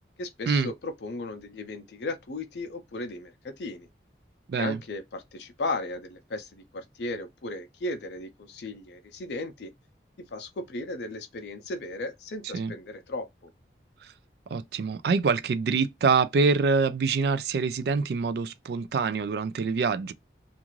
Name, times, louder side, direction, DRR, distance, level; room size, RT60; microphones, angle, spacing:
voice 1, 0.2-3.9 4.6-9.7 10.3-13.5, left 2 dB, 75° left, 0.5 m, -36 dB
voice 2, 14.5-20.1, right 4 dB, 65° right, 0.3 m, -25 dB
2.4 x 2.4 x 3.0 m
head